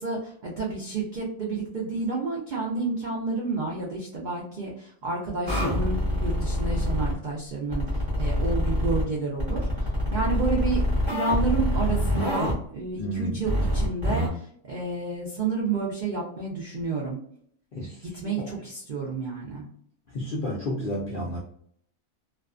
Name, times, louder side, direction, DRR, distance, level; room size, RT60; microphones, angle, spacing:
voice 1, 0.0-7.9 8.2-17.2 18.1-19.7, right 3 dB, 75° right, -4 dB, 0.4 m, -30 dB
sound 1, 5.5-7.1 7.7-9.0 9.4-12.5 13.5-14.3, left 1 dB, 25° right, 0.8 m, -25 dB
voice 2, 13.0-13.4 17.7-18.5 20.1-21.4, equal, 65° left, -4 dB, 0.5 m, -32 dB
2.4 x 2.3 x 2.4 m, 0.64 s
omnidirectional pair, 1.5 m